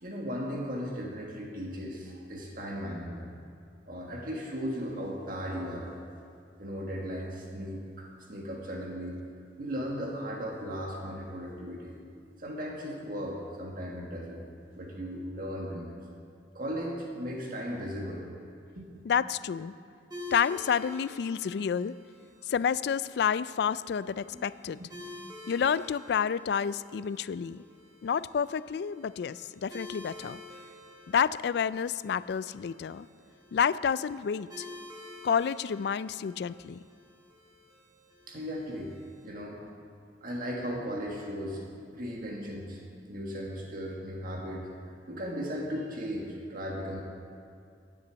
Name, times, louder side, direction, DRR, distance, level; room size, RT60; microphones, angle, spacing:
voice 1, 0.0-3.3 3.9-5.9 6.6-9.2 9.6-12.0 12.4-14.4 14.7-15.9 16.5-18.2 18.7-18.9 20.1-20.2 24.3-24.4 24.8-24.9 38.3-39.6 40.2-41.7 41.9-44.7 45.1-47.0, equal, 50° right, -1 dB, 1.6 m, -36 dB
voice 2, 19.0-19.7 20.3-21.9 22.5-24.8 25.5-27.6 28.0-30.4 31.1-33.1 33.5-34.7 35.2-36.8, left 7 dB, 65° left, 17 dB, 0.3 m, -29 dB
sound 1, 20.1-39.3, left 2 dB, 20° right, 2.5 m, -49 dB
11.0 x 9.8 x 8.0 m, 2.4 s
head